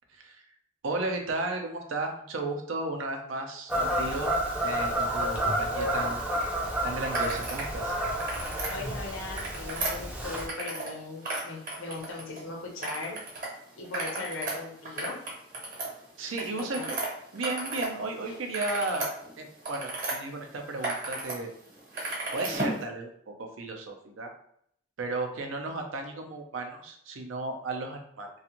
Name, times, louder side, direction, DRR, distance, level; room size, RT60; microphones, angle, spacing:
voice 1, 0.1-0.4 0.8-4.3 4.6-6.3 6.8-8.0 16.2-17.0 17.3-21.5 22.0-24.3 25.0-28.3, right 2 dB, 80° right, 3 dB, 0.5 m, -34 dB
Fowl / Bird vocalization bird call bird song, 3.7-10.5, right 1 dB, 5° right, 0.4 m, -30 dB
sound 1, 7.1-7.7 8.1-8.7 9.2-11.0 11.2-12.4 12.8-13.5 13.8-17.9 18.2-20.2 20.6-21.4 21.6-22.8, right 2 dB, 40° right, 0.9 m, -34 dB
voice 2, 8.7-13.2 13.8-15.2 16.8-16.9, left 3 dB, 90° left, -1 dB, 0.8 m, -38 dB
2.5 x 2.3 x 2.9 m, 0.68 s
head